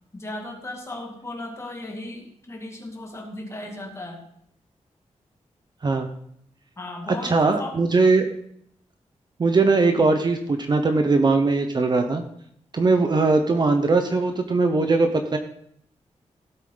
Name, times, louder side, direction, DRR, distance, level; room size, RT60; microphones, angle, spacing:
voice 1, 0.1-4.3 6.8-7.8 9.9-10.1, left 1 dB, 25° left, 0 dB, 2.4 m, -36 dB
voice 2, 7.2-8.2 9.4-12.2 12.7-15.4, right 3 dB, 35° right, 6 dB, 1.0 m, -20 dB
16.0 x 8.2 x 4.0 m, 0.69 s
wide cardioid pair, 165°, 12 cm